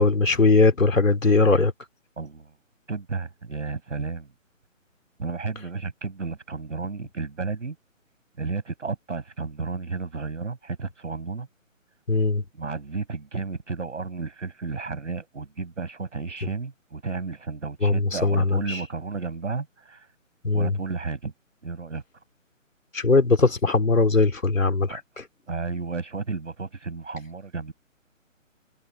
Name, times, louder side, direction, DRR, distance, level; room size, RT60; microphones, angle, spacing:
voice 1, 0.0-1.7 12.1-12.4 17.8-18.8 20.4-20.7 22.9-25.0, left 3 dB, 75° left, 3.1 m, -20 dB
voice 2, 2.2-2.5 2.9-4.3 5.2-7.8 8.4-11.5 12.5-20.1 20.5-21.3 21.6-22.0 24.9-25.0 25.5-27.7, right 4 dB, 65° right, 7.2 m, -32 dB
figure-of-eight pair, 145°, 40 cm